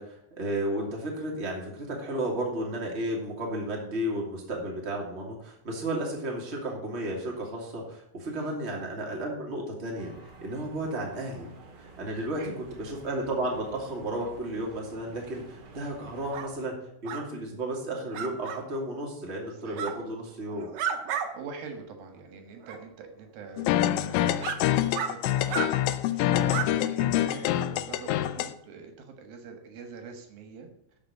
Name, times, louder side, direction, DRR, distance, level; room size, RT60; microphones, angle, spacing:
voice 1, 0.0-10.1 10.4-11.5 11.8-12.4 12.8-16.8 17.0-20.7, right 1 dB, 20° right, -1 dB, 2.4 m, -33 dB
voice 2, 8.2-8.6 12.1-12.6 19.5-20.1 21.3-30.7, right 5 dB, 85° right, 5 dB, 3.3 m, -44 dB
sound 1, 10.0-16.5, right 3 dB, 50° right, 2.6 m, -50 dB
sound 2, 16.3-16.5 17.0-17.2 18.1-18.6 19.7-19.9 20.5-21.3 21.7-21.8 22.6-22.8 23.5-23.6 24.4-24.6 24.9-25.1 25.5-25.7 26.5-26.7, right 8 dB, 70° right, 2.2 m, -32 dB
sound 3, 23.6-28.5, left 12 dB, 85° left, 2.3 m, -26 dB
13.0 x 5.2 x 7.8 m, 0.72 s
omnidirectional pair, 4.0 m